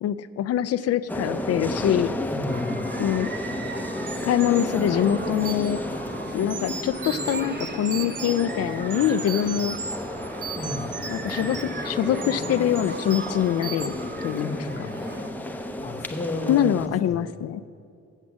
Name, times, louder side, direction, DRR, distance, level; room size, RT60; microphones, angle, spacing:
voice 1, 0.0-2.1 3.0-3.3 4.2-5.8 6.3-9.8 11.1-14.0 14.2-14.6 16.5-17.6, left 10 dB, 55° left, 15 dB, 0.4 m, -24 dB
sound 1, 1.1-16.9, left 1 dB, 5° left, 0.6 m, -32 dB
voice 2, 2.3-2.9 10.5-10.9 14.4-15.1 15.8-17.3, left 2 dB, 25° left, 5 dB, 1.0 m, -33 dB
sound 2, 2.5-15.3, right 4 dB, 35° right, 0.9 m, -40 dB
sound 3, 4.1-5.8 6.4-8.5 8.9-10.0 10.2-11.8 12.1-12.5 12.7-13.4 13.6-13.9, right 5 dB, 85° right, 1.1 m, -37 dB
8.1 x 7.3 x 7.2 m, 2.4 s
cardioid pair, 90°, 30 cm